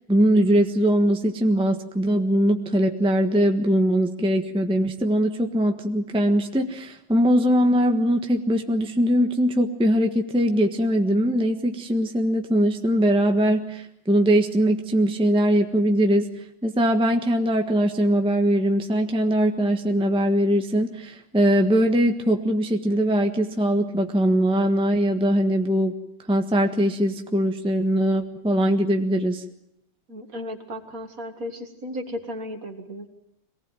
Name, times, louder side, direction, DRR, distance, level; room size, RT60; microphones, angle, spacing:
voice 1, 0.1-16.3 16.6-25.9 26.3-29.4, equal, 5° right, 4 dB, 1.2 m, -21 dB
voice 2, 30.1-33.1, left 1 dB, 50° right, 6 dB, 2.5 m, -35 dB
23.5 x 19.0 x 9.0 m, 0.75 s
omnidirectional pair, 2.0 m